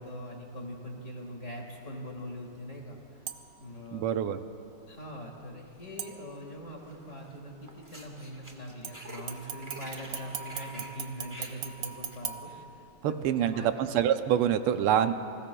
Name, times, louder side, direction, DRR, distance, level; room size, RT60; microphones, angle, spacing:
voice 1, 0.0-3.2 3.6-4.2 4.9-13.7, equal, 35° left, 0 dB, 2.0 m, -42 dB
sound 1, 3.3-3.7 6.0-6.7 8.8-13.2 13.7-13.8, right 8 dB, 65° right, 0.9 m, -41 dB
voice 2, 3.9-4.4 13.0-15.1, right 10 dB, 90° right, 10 dB, 1.6 m, -26 dB
sound 2, 6.9-7.4 7.6-12.2, right 1 dB, 10° right, 1.2 m, -48 dB
29.5 x 20.0 x 2.3 m, 2.7 s
omnidirectional pair, 2.4 m